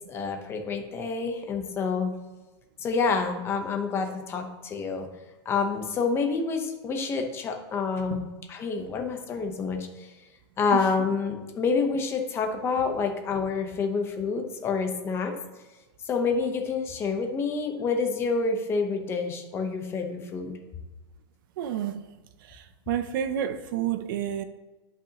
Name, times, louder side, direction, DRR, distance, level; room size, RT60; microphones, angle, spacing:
voice 1, 0.1-2.1 2.8-5.1 5.4-10.1 10.6-15.3 16.0-20.6, left 4 dB, 15° left, 4 dB, 0.8 m, -28 dB
voice 2, 21.6-22.0 22.5-24.4, right 10 dB, 45° right, 11 dB, 0.5 m, -30 dB
11.0 x 5.7 x 2.9 m, 1.2 s
supercardioid pair, 160°, 15 cm